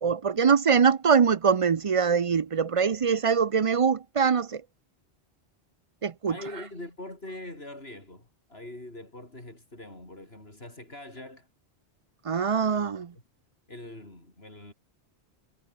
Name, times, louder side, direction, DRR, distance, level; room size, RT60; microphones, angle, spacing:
voice 1, 0.0-4.6 6.0-6.3 12.3-13.1, right 6 dB, 40° right, 0.5 m, -23 dB
voice 2, 6.3-11.5 12.7-13.0 13.7-14.7, left 1 dB, 65° left, 6.3 m, -43 dB
omnidirectional pair, 1.1 m